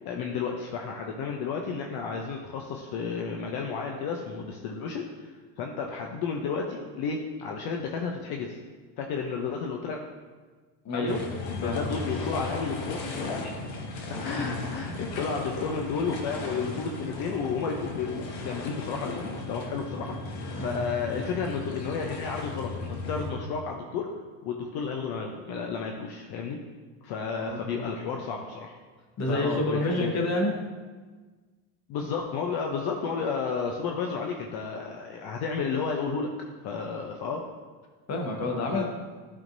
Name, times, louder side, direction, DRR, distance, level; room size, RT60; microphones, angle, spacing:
voice 1, 0.0-8.6 9.0-10.0 10.9-13.6 14.1-24.1 24.4-26.6 27.0-28.7 29.3-30.1 31.9-36.3 36.6-37.5 38.7-38.8, left 5 dB, 50° left, 1 dB, 0.7 m, -32 dB
voice 2, 10.8-11.9 14.4-14.5 20.6-20.8 27.4-27.9 29.2-30.5 38.1-38.8, left 1 dB, 35° left, 0 dB, 1.3 m, -29 dB
sound 1, 11.1-23.3, left 3 dB, 90° left, 1.2 m, -36 dB
10.5 x 3.6 x 2.6 m, 1.4 s
supercardioid pair, 115°, 48 cm